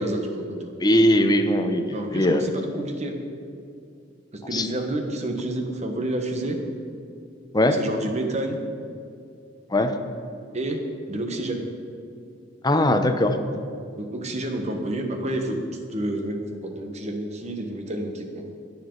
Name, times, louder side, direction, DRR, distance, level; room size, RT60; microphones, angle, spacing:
voice 1, 0.0-0.7 1.9-3.2 4.3-6.6 7.7-8.6 10.5-11.7 14.0-15.6 15.9-18.4, right 1 dB, 35° right, 4 dB, 1.2 m, -29 dB
voice 2, 0.8-2.4 4.5-4.7 7.5-7.8 9.7-9.9 12.6-13.3, left 1 dB, 20° left, 7 dB, 0.7 m, -20 dB
18.0 x 7.2 x 3.9 m, 2.5 s
head